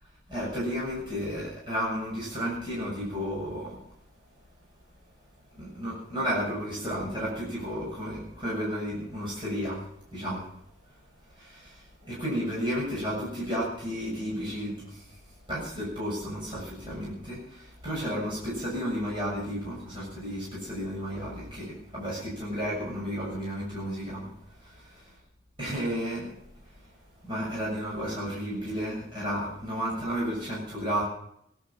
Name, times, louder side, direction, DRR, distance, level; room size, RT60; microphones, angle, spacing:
voice 1, 0.3-3.8 5.6-9.8 10.1-10.4 11.4-15.0 15.5-24.3 24.7-25.0 25.6-26.3 27.2-31.0, equal, 25° right, -6 dB, 7.1 m, -32 dB
19.0 x 12.0 x 5.9 m, 0.72 s
head